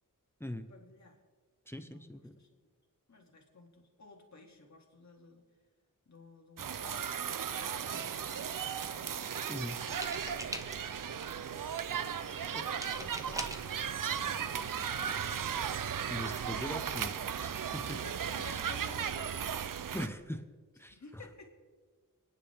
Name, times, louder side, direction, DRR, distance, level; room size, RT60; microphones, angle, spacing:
voice 1, 0.7-1.2 1.8-2.6 3.1-5.5 6.1-9.2 12.2-15.3 17.7-19.6 19.9-20.2 20.8-21.5, left 3 dB, 55° left, 1 dB, 2.7 m, -54 dB
voice 2, 1.7-2.3 9.5-9.8 12.5-12.7 16.1-17.1 17.9-18.0 18.4-18.6 19.9-20.4 20.8-21.0, left 1 dB, 5° left, 8 dB, 0.9 m, -40 dB
sound 1, 6.6-20.1, right 8 dB, 75° right, 0.6 m, -36 dB
sound 2, 9.9-11.0 12.8-13.7 14.7-14.8 15.1-15.4, right 1 dB, 10° right, 1.1 m, -42 dB
29.5 x 10.5 x 3.6 m, 1.5 s
wide cardioid pair, 105°, 33 cm